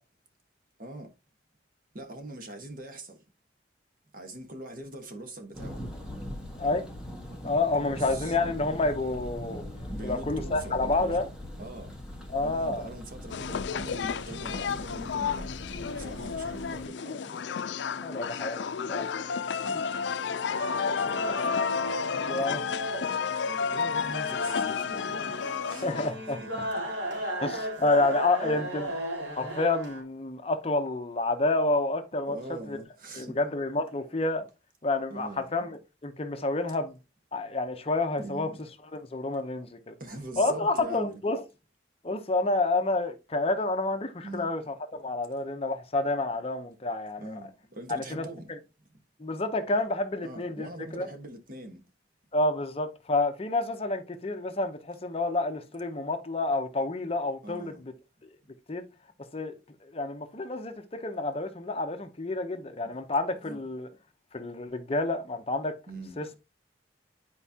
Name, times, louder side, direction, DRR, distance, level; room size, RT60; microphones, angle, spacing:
voice 1, 0.8-1.1 1.9-3.2 4.1-5.8 7.9-8.4 9.9-11.3 11.6-11.9 12.4-15.5 15.8-17.4 19.6-19.9 20.8-21.2 22.3-22.7 23.7-25.9 26.4-26.9 27.5-27.6 28.0-28.8 32.3-33.4 35.1-35.5 38.2-38.6 40.0-41.2 44.2-44.5 47.2-48.5 50.2-51.8 57.4-57.9 63.4-63.6 65.9-66.2, right 1 dB, 50° right, 1.4 m, -42 dB
Thunder, 5.5-16.9, left 1 dB, 5° right, 1.6 m, -41 dB
voice 2, 6.6-6.9 7.4-9.6 10.0-11.3 12.3-12.8 18.0-19.1 21.2-21.3 22.2-22.6 25.8-26.4 27.4-28.9 29.3-32.4 32.7-32.8 33.2-34.5 34.8-37.0 37.3-38.5 38.9-40.0 40.4-41.4 42.0-44.7 45.0-47.4 47.9-48.2 49.2-50.7 50.9-51.1 52.3-57.7 58.7-58.8 59.3-59.5 59.9-63.9 64.3-65.7 66.2-66.3, left 2 dB, 30° left, 0.7 m, -29 dB
sound 1, 13.3-26.1, left 6 dB, 75° left, 0.4 m, -31 dB
sound 2, 20.4-30.0, right 1 dB, 80° right, 2.7 m, -36 dB
10.5 x 4.5 x 2.8 m
head